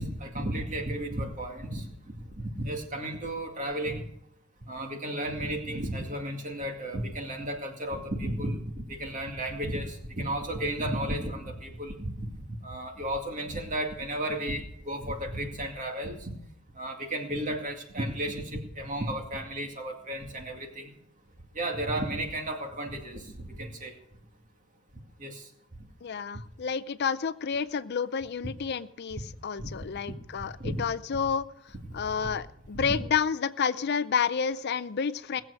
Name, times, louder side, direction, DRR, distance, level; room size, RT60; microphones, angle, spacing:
voice 1, 0.0-1.9 2.4-4.0 4.7-16.3 16.7-20.9 21.5-23.9 25.2-25.5 29.6-29.9 30.4-30.8 31.9-32.0 32.7-32.9, right 1 dB, 40° right, 3 dB, 2.3 m, -33 dB
voice 2, 26.0-35.4, left 6 dB, 50° left, 14 dB, 0.5 m, -30 dB
19.0 x 7.6 x 6.5 m, 0.73 s
head